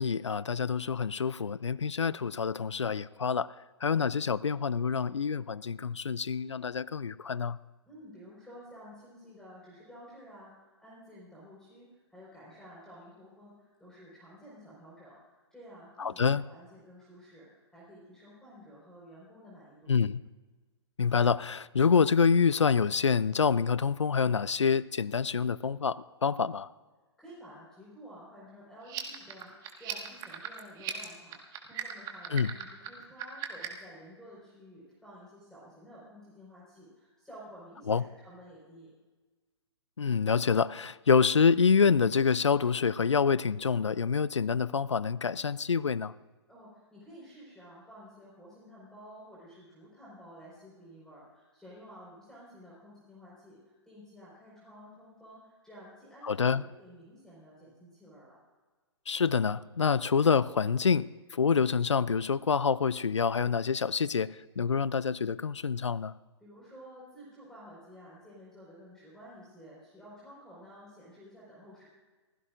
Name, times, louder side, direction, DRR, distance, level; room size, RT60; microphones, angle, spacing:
voice 1, 0.0-3.5 3.8-7.6 16.0-16.4 19.9-20.2 21.0-26.6 32.3-32.6 37.9-38.0 40.0-46.1 56.2-56.6 59.1-64.3 64.6-66.1, left 6 dB, 85° left, 19 dB, 0.5 m, -27 dB
voice 2, 7.8-10.5 10.8-20.0 26.3-26.5 27.2-31.4 31.7-38.9 46.5-58.4 66.4-71.9, equal, 5° left, -7 dB, 4.7 m, -52 dB
sound 1, 28.8-33.9, right 10 dB, 25° right, 1.6 m, -39 dB
23.5 x 15.5 x 2.5 m, 1.3 s
figure-of-eight pair, 125°, 15 cm